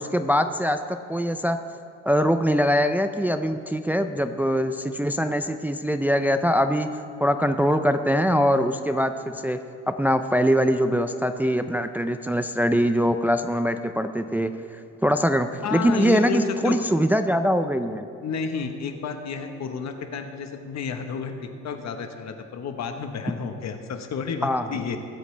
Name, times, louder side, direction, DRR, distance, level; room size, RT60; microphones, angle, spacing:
voice 1, 0.0-1.6 2.1-6.9 7.2-9.6 9.9-18.1 24.4-24.7, equal, 5° right, 8 dB, 0.4 m, -23 dB
voice 2, 15.6-16.8 18.2-21.3 21.6-25.0, left 6 dB, 60° left, 6 dB, 1.2 m, -31 dB
21.0 x 8.1 x 3.3 m, 2.8 s
cardioid pair, 90°, 30 cm